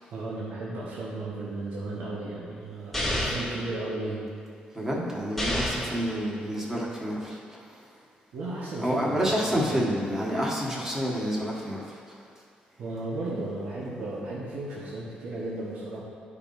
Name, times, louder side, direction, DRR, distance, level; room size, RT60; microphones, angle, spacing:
voice 1, 0.1-4.3 5.8-6.0 8.3-9.8 12.8-16.0, right 2 dB, 75° right, -7 dB, 1.4 m, -35 dB
sound 1, 2.9-3.6 5.4-6.0, left 1 dB, 5° left, 1.6 m, -28 dB
voice 2, 4.7-7.8 8.8-11.9, equal, 15° right, -5 dB, 1.5 m, -29 dB
12.0 x 5.5 x 2.7 m, 2.2 s
cardioid pair, 125°, 3 cm